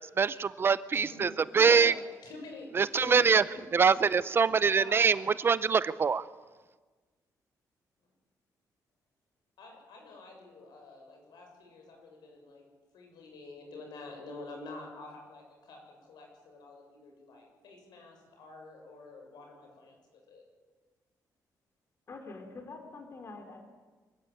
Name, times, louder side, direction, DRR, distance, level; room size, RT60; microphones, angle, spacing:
voice 1, 0.2-1.9 2.7-3.4 3.7-6.2, right 5 dB, 35° right, 16 dB, 0.6 m, -24 dB
voice 2, 0.9-3.6 4.8-5.3 9.6-12.7 12.9-20.4, left 2 dB, 85° left, 2 dB, 7.3 m, -48 dB
voice 3, 3.0-3.6 22.1-23.6, left 3 dB, 40° left, 5 dB, 3.3 m, -44 dB
24.5 x 15.0 x 9.1 m, 1.4 s
cardioid pair, 150°, 7 cm